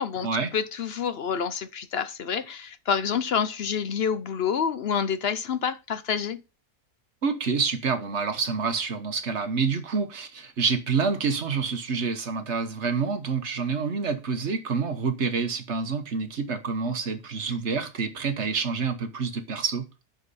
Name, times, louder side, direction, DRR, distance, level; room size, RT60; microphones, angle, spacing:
voice 1, 0.0-6.4, left 7 dB, 55° left, 0.8 m, -28 dB
voice 2, 7.2-19.8, right 5 dB, 50° right, 1.5 m, -27 dB
9.8 x 6.7 x 4.1 m
omnidirectional pair, 1.5 m